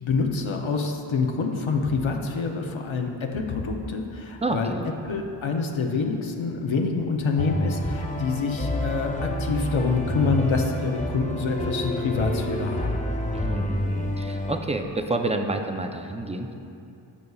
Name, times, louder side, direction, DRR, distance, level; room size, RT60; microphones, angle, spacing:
voice 1, 0.0-4.7 5.0-12.9, left 4 dB, 80° left, 2 dB, 0.8 m, -26 dB
voice 2, 4.4-4.9 13.3-16.5, right 2 dB, 15° right, 5 dB, 0.5 m, -29 dB
sound 1, 7.4-14.6, left 1 dB, 15° left, 0.8 m, -29 dB
14.5 x 5.3 x 2.3 m, 2.7 s
cardioid pair, 50°, 46 cm